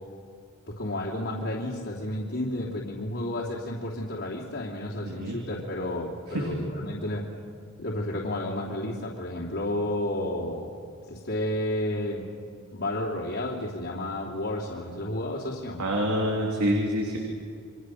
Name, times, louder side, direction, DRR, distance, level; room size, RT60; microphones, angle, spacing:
voice 1, 0.8-7.2 7.8-10.7 11.1-12.2 12.7-15.8, left 1 dB, 55° left, -4 dB, 3.1 m, -31 dB
voice 2, 5.0-5.4 6.3-6.5 15.8-17.2, equal, 85° right, -1 dB, 3.5 m, -26 dB
29.5 x 24.5 x 6.5 m, 2.2 s
head